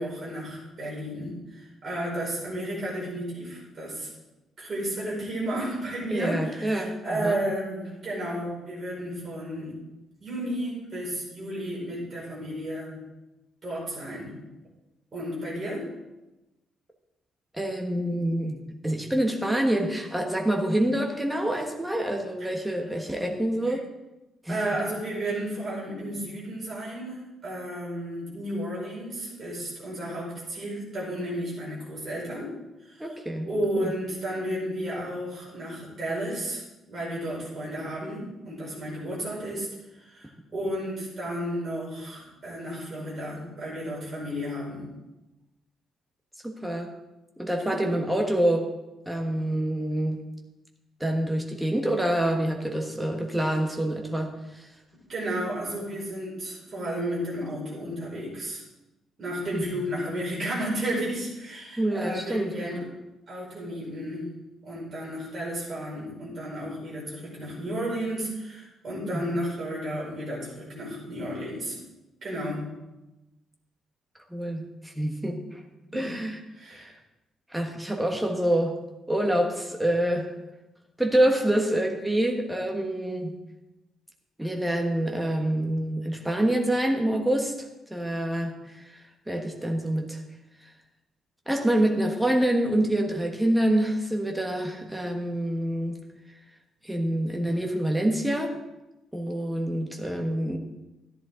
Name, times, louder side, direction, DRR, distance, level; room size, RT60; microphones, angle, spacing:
voice 1, 0.0-4.1 4.6-9.8 10.2-13.0 13.6-14.4 15.1-15.9 23.6-23.7 24.5-32.5 32.8-33.1 33.4-36.6 36.9-39.7 39.9-44.9 47.6-48.0 55.1-58.6 59.2-62.8 63.3-64.3 64.6-71.8 72.2-72.7 75.8-76.1 76.5-76.9, right 1 dB, 30° right, -5 dB, 5.1 m, -33 dB
voice 2, 6.1-7.4 17.5-18.6 18.8-23.8 24.4-24.6 33.0-33.5 33.8-33.9 46.4-46.9 47.4-48.7 49.1-50.2 51.0-54.7 59.5-59.6 61.8-62.9 69.0-69.3 74.3-75.6 75.9-76.4 76.7-76.8 77.5-78.8 79.1-80.3 81.0-83.3 84.4-90.2 91.5-96.0 96.8-98.6 99.1-100.6, right 1 dB, 5° right, 2 dB, 1.2 m, -26 dB
14.0 x 10.5 x 3.7 m, 1.0 s
cardioid pair, 180°, 0 cm